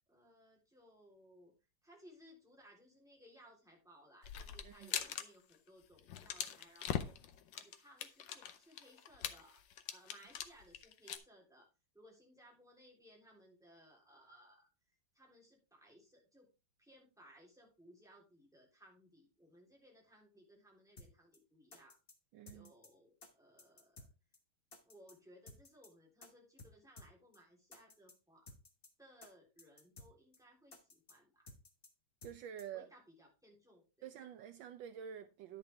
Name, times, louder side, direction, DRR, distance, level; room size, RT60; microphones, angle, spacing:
voice 1, 0.0-1.5 1.8-7.2 7.5-9.6 9.9-11.7 11.9-14.7 15.1-16.5 16.8-22.0 22.5-24.1 24.8-28.5 29.0-31.5 32.7-34.1, equal, ahead, 3.5 m, -63 dB
sound 1, 4.2-5.2 5.5-5.7 6.0-11.2, left 9 dB, 70° left, 1.5 m, -42 dB
sound 2, 21.0-21.1 21.3-21.4 21.7-22.1 22.5-22.9 23.2-23.3 23.6-24.1 24.3-24.4 24.7-25.1 25.5-25.9 26.2-26.3 26.6-26.7 27.0-27.1 27.3-27.4 27.7-28.1 28.5-28.9 29.2-29.3 29.6-30.1 30.3-30.4 30.7-31.1 31.5-31.9 32.2-32.3 32.6-32.7, left 2 dB, 30° left, 1.5 m, -56 dB
voice 2, 22.3-22.7 32.2-32.9 34.0-35.6, right 9 dB, 75° right, 1.3 m, -48 dB
10.5 x 6.9 x 3.5 m
omnidirectional pair, 2.2 m